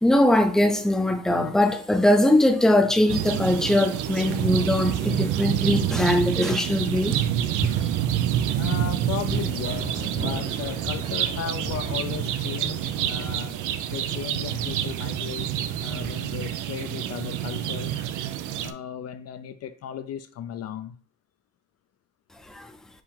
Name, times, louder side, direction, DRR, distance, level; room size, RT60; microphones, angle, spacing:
voice 1, 0.0-7.2 7.6-7.9 22.5-22.7, left 1 dB, ahead, 0.6 m, -21 dB
sound 1, 3.1-18.7, right 11 dB, 85° right, 0.5 m, -27 dB
voice 2, 8.6-13.6 13.9-15.5 15.8-18.0 18.6-21.0, left 9 dB, 55° left, 0.4 m, -35 dB
Thunder, 9.2-15.7 16.0-16.6 17.1-17.9, right 3 dB, 50° right, 2.0 m, -37 dB
4.7 x 2.8 x 3.6 m
cardioid pair, 90°, 30 cm